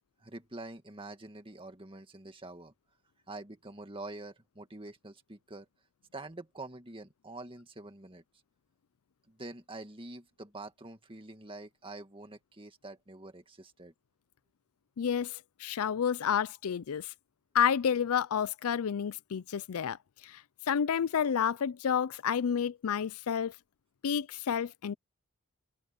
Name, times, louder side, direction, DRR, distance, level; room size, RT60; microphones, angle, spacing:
voice 1, 0.2-2.7 3.3-5.7 6.1-8.2 9.3-13.9, right 2 dB, 25° right, 2.0 m, -46 dB
voice 2, 15.0-17.1 17.5-20.0 20.2-20.4 20.7-23.5 24.0-24.9, left 8 dB, 70° left, 0.4 m, -30 dB
open air
head